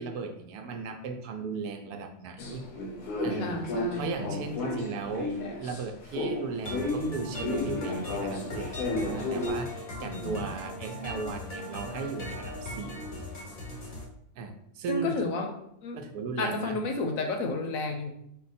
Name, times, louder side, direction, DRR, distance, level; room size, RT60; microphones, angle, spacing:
voice 1, 0.0-2.6 3.2-3.6 3.9-13.0 14.4-15.2 16.0-16.9, right 4 dB, 80° right, 5 dB, 1.1 m, -36 dB
sound 1, 2.4-5.8 6.1-9.5, left 2 dB, 85° left, 1.4 m, -33 dB
voice 2, 3.4-4.4 10.0-10.5 14.9-15.5 15.8-16.0 16.4-18.1, left 3 dB, 70° left, 4 dB, 1.0 m, -32 dB
sound 2, 6.7-14.0, left 1 dB, 40° left, 0.6 m, -39 dB
4.7 x 2.2 x 4.1 m, 0.75 s
omnidirectional pair, 1.6 m